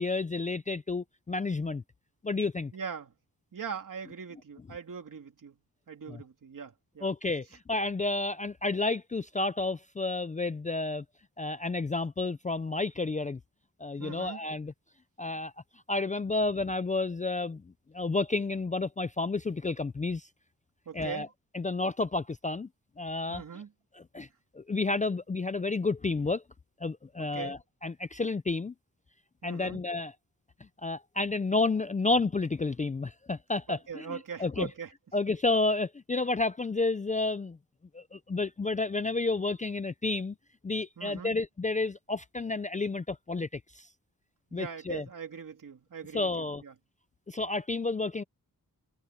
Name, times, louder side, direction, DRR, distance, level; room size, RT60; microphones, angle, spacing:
voice 1, 0.0-1.8 2.2-2.7 6.1-6.2 7.0-11.0 11.4-13.4 13.8-14.7 15.2-20.3 20.9-21.3 21.5-22.7 23.0-23.4 23.9-24.3 24.5-26.4 26.8-28.7 29.4-30.1 30.8-34.7 35.1-37.6 37.9-40.4 40.6-43.9 44.5-45.1 46.1-46.6 47.3-48.2, left 3 dB, 20° left, 0.4 m, -31 dB
voice 2, 2.7-3.1 3.5-5.6 5.9-7.1 14.0-14.4 20.8-21.3 23.3-23.7 27.2-27.6 29.4-29.8 33.7-34.9 41.0-41.3 44.5-46.7, right 6 dB, 60° right, 3.2 m, -41 dB
wide cardioid pair, 180°, 36 cm